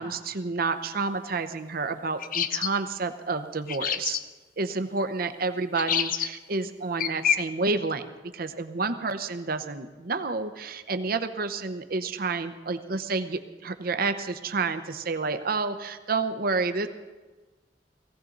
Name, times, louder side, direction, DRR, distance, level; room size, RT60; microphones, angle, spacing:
voice 1, 0.0-4.2 4.6-8.0 8.4-16.9, right 3 dB, 55° right, 9 dB, 0.8 m, -29 dB
sound 1, 2.2-2.7 3.7-4.2 5.8-6.3 7.0-7.4, left 9 dB, 50° left, 0.6 m, -26 dB
18.5 x 16.0 x 3.9 m, 1.2 s
head